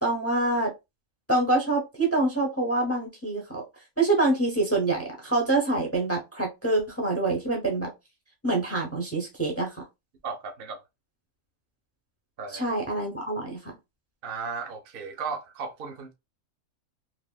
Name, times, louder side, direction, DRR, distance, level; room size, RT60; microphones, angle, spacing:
voice 1, 0.0-0.7 1.3-3.6 4.0-7.9 8.4-9.8 12.5-13.7, right 2 dB, 20° left, 0.4 m, -26 dB
voice 2, 10.2-10.8 12.4-12.6 14.2-16.1, right 5 dB, 60° right, 0.6 m, -35 dB
3.3 x 2.5 x 2.2 m
omnidirectional pair, 1.5 m